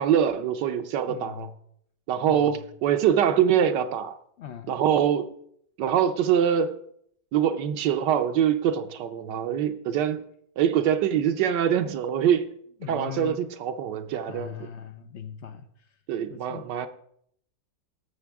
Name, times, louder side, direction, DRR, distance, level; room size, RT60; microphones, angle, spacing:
voice 1, 0.0-1.5 2.1-4.2 4.7-5.3 5.8-6.8 7.3-10.2 10.6-12.5 12.9-14.5 16.1-16.9, right 9 dB, 75° right, 1.3 m, -24 dB
voice 2, 1.1-1.5 2.3-2.7 4.4-4.8 12.8-13.4 14.3-16.0 16.3-16.9, left 9 dB, 85° left, 0.6 m, -40 dB
18.0 x 6.6 x 3.5 m
omnidirectional pair, 1.9 m